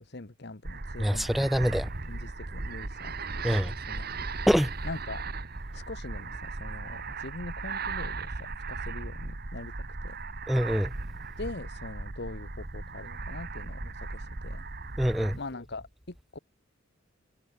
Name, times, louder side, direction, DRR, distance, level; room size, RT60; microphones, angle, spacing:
voice 1, 0.0-1.3 1.7-1.8 2.1-4.3 4.8-5.2 5.7-9.7 10.0-10.2 11.4-14.6 15.3-16.4, left 2 dB, 50° left, 1.4 m, -42 dB
sound 1, 0.6-15.4, right 3 dB, 45° right, 1.5 m, -37 dB
voice 2, 1.0-1.9 3.4-3.7 4.5-4.7 10.5-10.9 15.0-15.4, equal, ahead, 0.8 m, -25 dB
head